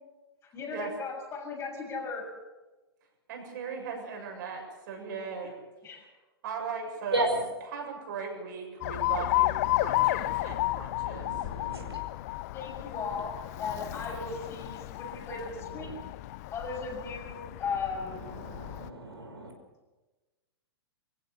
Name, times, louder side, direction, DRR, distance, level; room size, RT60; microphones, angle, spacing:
voice 1, 0.4-2.3 5.8-6.1 12.5-15.9 16.5-18.2, left 4 dB, 20° left, 0 dB, 6.7 m, -37 dB
voice 2, 3.3-5.5 5.9-6.1 6.4-7.2 7.7-11.3, right 6 dB, 50° right, 2 dB, 7.0 m, -38 dB
voice 3, 7.1-7.5 10.9-12.0 15.5-15.9 18.0-19.5, right 2 dB, 80° right, 2 dB, 5.5 m, -34 dB
Alarm, 8.8-18.9, left 17 dB, 40° left, 0.7 m, -32 dB
25.0 x 16.0 x 6.9 m, 1.2 s
figure-of-eight pair, 110°, 13 cm